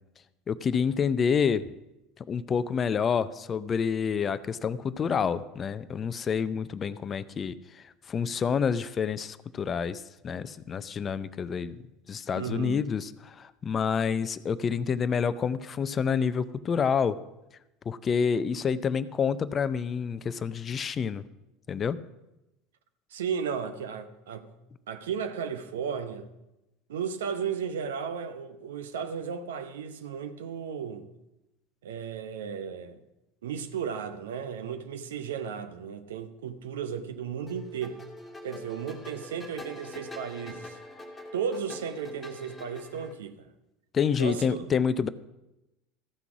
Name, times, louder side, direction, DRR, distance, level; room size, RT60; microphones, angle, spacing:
voice 1, 0.5-1.7 2.3-11.8 12.1-17.2 17.9-21.2 21.7-22.0 43.9-45.1, left 6 dB, 30° left, 0.5 m, -28 dB
voice 2, 12.3-12.8 23.1-24.5 24.9-26.3 26.9-31.0 31.8-33.0 33.4-38.0 38.4-40.8 41.3-43.5 44.2-44.7, right 7 dB, 70° right, 0.8 m, -34 dB
sound 1, 37.5-43.1, left 1 dB, 10° left, 2.0 m, -44 dB
14.5 x 5.9 x 5.9 m
figure-of-eight pair, 75°, 0 cm